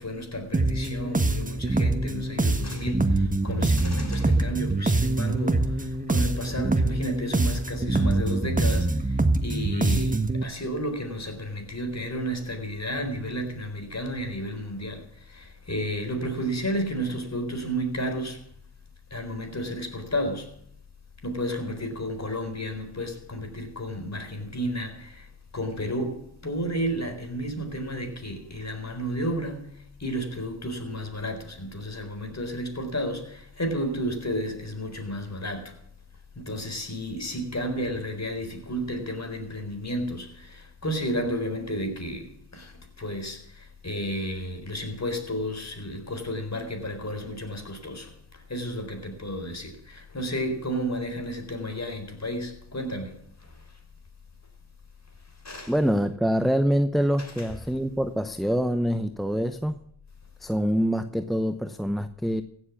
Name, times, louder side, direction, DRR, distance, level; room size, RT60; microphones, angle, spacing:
voice 1, 0.0-18.4 19.1-20.5 21.2-25.3 25.5-35.8 36.4-53.6 55.4-55.7 57.2-57.5, equal, 30° left, 4.1 m, -32 dB
sound 1, 0.5-10.4, right 2 dB, 15° right, 1.3 m, -24 dB
voice 2, 55.7-59.8 60.4-62.4, equal, ahead, 0.8 m, -25 dB
16.0 x 7.6 x 7.2 m
supercardioid pair, 45°, 50 cm